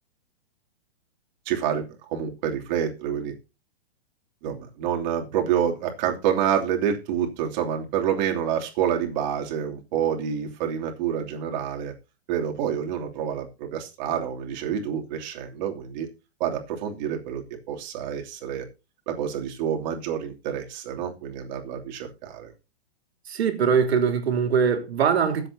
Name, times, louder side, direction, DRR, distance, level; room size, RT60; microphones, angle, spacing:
voice 1, 1.5-1.8 2.1-3.3 4.4-11.9 12.3-16.1 16.4-18.6 19.1-22.5, right 9 dB, 45° right, 3.0 m, -28 dB
voice 2, 23.3-25.5, right 6 dB, 80° right, 3.2 m, -22 dB
20.5 x 7.9 x 2.8 m
hypercardioid pair, 155°, 32 cm